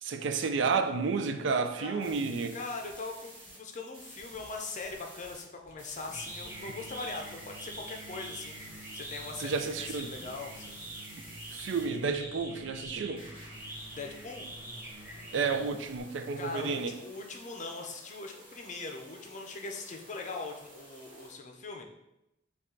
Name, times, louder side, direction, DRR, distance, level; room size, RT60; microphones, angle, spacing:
voice 1, 0.0-2.6 9.4-10.1 11.5-13.3 15.3-16.9, right 5 dB, 75° right, 9 dB, 0.4 m, -31 dB
voice 2, 1.8-2.1 2.5-10.8 13.9-14.5 16.4-21.8, left 3 dB, 40° left, 3 dB, 0.5 m, -41 dB
sound 1, 2.0-5.4 5.8-12.0 13.2-21.3, right 1 dB, 30° right, 1.3 m, -52 dB
sound 2, 5.6-16.0, right 1 dB, 10° right, 0.8 m, -45 dB
5.3 x 2.4 x 3.8 m, 0.88 s
head